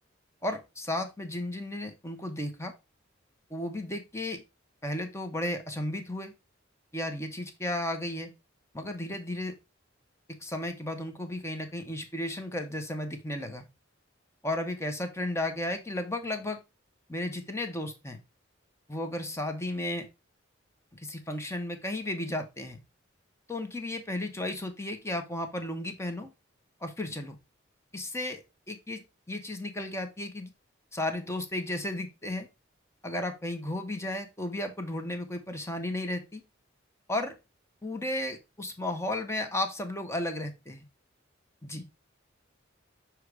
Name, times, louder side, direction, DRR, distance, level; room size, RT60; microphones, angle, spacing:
voice 1, 0.4-2.7 3.5-4.4 4.8-6.3 6.9-8.3 8.7-9.5 10.4-13.6 14.4-16.6 17.1-18.2 18.9-20.1 20.9-22.8 23.5-26.3 26.8-27.4 27.9-30.5 30.9-32.5 33.0-36.4 37.1-37.4 37.8-40.8 41.6-41.9, left 1 dB, 15° left, 6 dB, 0.9 m, -34 dB
6.5 x 3.1 x 4.7 m, 0.25 s
head